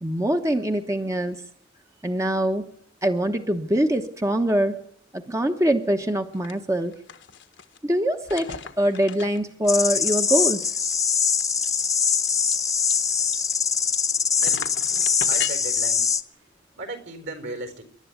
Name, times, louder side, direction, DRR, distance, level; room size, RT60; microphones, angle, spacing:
voice 1, 0.0-1.4 2.0-2.7 3.0-4.8 5.1-6.9 7.8-10.8, right 1 dB, 15° right, 5 dB, 1.1 m, -24 dB
sound 1, 6.3-6.5 6.8-7.8 8.2-9.7 10.1-10.2 10.4-10.5 10.9-14.1 14.4-15.5, left 8 dB, 65° left, 1.3 m, -37 dB
sound 2, 9.7-16.2, left 6 dB, 15° left, 0.9 m, -23 dB
voice 2, 15.3-16.1 16.8-17.8, right 2 dB, 65° right, 8 dB, 4.5 m, -36 dB
28.0 x 11.5 x 9.3 m, 0.65 s
head